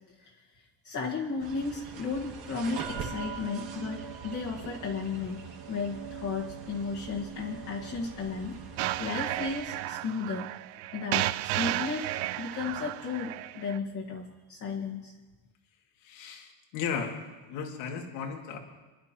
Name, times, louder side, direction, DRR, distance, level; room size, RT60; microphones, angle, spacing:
voice 1, 0.8-10.5 10.9-15.1, left 4 dB, 40° left, -3 dB, 1.8 m, -34 dB
sound 1, 1.4-9.6, right 6 dB, 50° right, 2.2 m, -42 dB
sound 2, 8.8-13.8, right 15 dB, 80° right, 0.6 m, -33 dB
voice 2, 16.0-17.1 17.5-18.6, left 6 dB, 80° left, 1 dB, 2.5 m, -35 dB
25.5 x 11.5 x 3.0 m, 1.2 s
cardioid pair, 140°, 45 cm